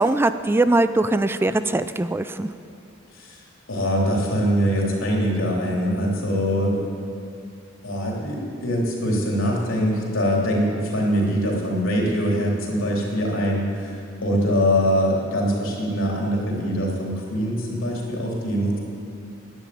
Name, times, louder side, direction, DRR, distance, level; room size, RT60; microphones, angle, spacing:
voice 1, 0.0-2.5, right 2 dB, 10° right, 12 dB, 0.3 m, -21 dB
voice 2, 3.7-6.8 7.8-14.0 14.2-18.8, equal, 85° left, -2 dB, 3.3 m, -23 dB
12.5 x 10.0 x 8.5 m, 2.5 s
head